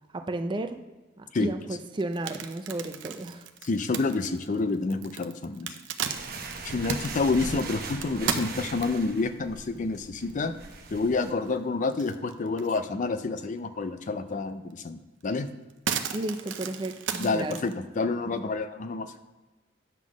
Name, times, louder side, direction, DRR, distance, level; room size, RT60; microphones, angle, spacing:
voice 1, 0.1-0.8 1.2-3.5 16.1-17.6, right 2 dB, 25° right, 7 dB, 0.5 m, -33 dB
sound 1, 2.0-9.2 9.8-9.9 10.3-10.4 10.7-11.6 11.9-12.9 13.2-13.3 14.7-14.8 15.2-17.7, right 7 dB, 80° right, 0.6 m, -35 dB
voice 2, 3.6-5.7 6.6-10.5 10.9-15.5 17.2-19.1, left 3 dB, 45° left, 10 dB, 0.5 m, -28 dB
sound 2, 6.0-11.3, right 3 dB, 55° right, 0.9 m, -40 dB
9.1 x 3.9 x 6.1 m, 1.2 s
head